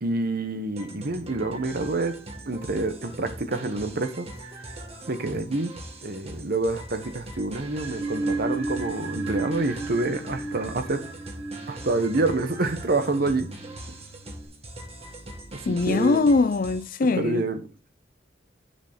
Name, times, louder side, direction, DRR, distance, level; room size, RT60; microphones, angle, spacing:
voice 1, 0.0-2.2 2.5-4.6 5.1-5.7 6.0-11.0 11.7-13.5 15.5-16.3 17.0-17.6, right 2 dB, 50° right, 1.0 m, -27 dB
sound 1, 0.8-17.1, right 1 dB, 35° right, 1.7 m, -42 dB
sound 2, 7.5-14.4, right 2 dB, 80° right, 2.2 m, -34 dB
voice 2, 15.7-17.4, left 3 dB, 45° left, 0.5 m, -22 dB
7.9 x 6.7 x 4.3 m
head